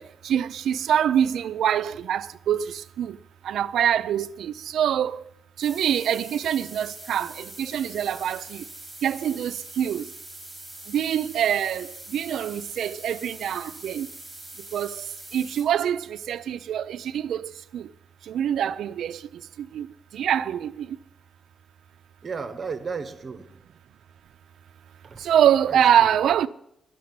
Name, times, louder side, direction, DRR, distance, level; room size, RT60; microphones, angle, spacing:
voice 1, 0.0-2.6 3.0-3.2 3.5-5.2 5.6-8.6 9.0-10.0 10.9-11.9 12.1-14.1 14.7-14.9 15.3-17.8 18.3-19.2 19.7-19.9 20.1-20.9 25.2-26.5, right 9 dB, 85° right, 0.5 m, -24 dB
sound 1, 5.6-15.6, right 1 dB, 15° right, 5.5 m, -43 dB
voice 2, 22.2-23.6 25.0-25.2 25.7-26.1, right 5 dB, 40° right, 1.2 m, -34 dB
11.5 x 6.8 x 9.4 m
cardioid pair, 130°, 0 cm